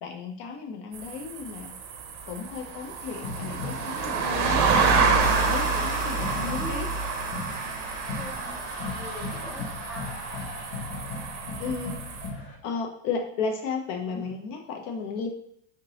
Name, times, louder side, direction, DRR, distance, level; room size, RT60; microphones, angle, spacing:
voice 1, 0.0-1.7 2.3-4.7 5.2-6.9 11.6-11.9 12.6-15.3, left 5 dB, 55° left, 2 dB, 0.7 m, -34 dB
sound 1, 0.9-12.3, right 5 dB, 70° right, 0.7 m, -28 dB
sound 2, 3.2-12.6, left 3 dB, 90° left, 1.3 m, -37 dB
sound 3, 5.2-10.7, left 2 dB, 35° left, 1.1 m, -41 dB
voice 2, 5.7-7.2 8.2-10.2, right 1 dB, ahead, 0 dB, 0.4 m, -43 dB
3.7 x 2.7 x 2.8 m, 0.71 s
supercardioid pair, 125°, 36 cm